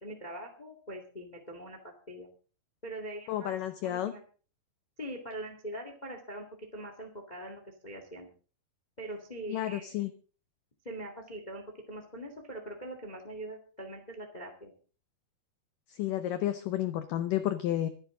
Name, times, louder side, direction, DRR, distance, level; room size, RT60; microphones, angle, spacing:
voice 1, 0.0-1.8 2.1-2.3 2.8-3.6 3.8-4.2 5.0-6.4 6.7-8.3 9.0-10.0 10.8-14.7, right 1 dB, 30° left, 4 dB, 0.7 m, -42 dB
voice 2, 3.3-4.1 9.5-10.1 15.9-17.9, left 12 dB, 85° left, 10 dB, 1.8 m, -31 dB
24.5 x 9.7 x 3.8 m, 0.39 s
omnidirectional pair, 4.9 m